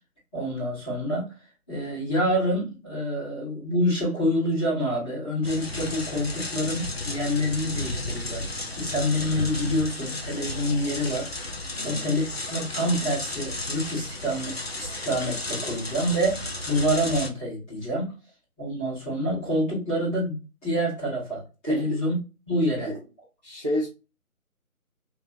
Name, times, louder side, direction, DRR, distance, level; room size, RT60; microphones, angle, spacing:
voice 1, 0.3-1.3 1.7-8.5 8.8-18.1 18.6-22.2 22.5-22.9, equal, 10° left, -12 dB, 2.0 m, -27 dB
sound 1, 5.4-17.3, left 2 dB, 45° left, 0.6 m, -33 dB
voice 2, 11.7-12.0 21.7-22.0 22.8-23.0 23.4-23.9, equal, 30° right, -4 dB, 0.7 m, -29 dB
3.4 x 3.4 x 2.7 m, 0.30 s
figure-of-eight pair, 160°, 44 cm